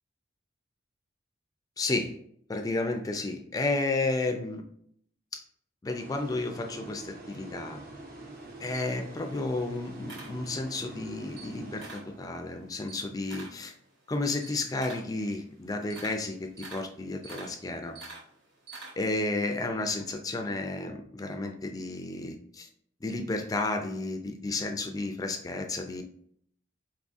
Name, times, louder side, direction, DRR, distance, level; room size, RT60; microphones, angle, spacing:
voice 1, 1.8-2.2 2.5-4.6 5.3-5.4 5.8-7.8 8.6-13.7 14.1-18.0 18.9-22.7 23.0-26.0, left 2 dB, 20° left, 5 dB, 0.3 m, -32 dB
sound 1, 5.9-12.6, right 2 dB, 55° right, 1.0 m, -45 dB
Camera, 8.3-10.9 11.2-12.2 12.5-19.2, right 3 dB, 70° right, 1.5 m, -47 dB
4.5 x 3.5 x 2.5 m, 0.67 s
head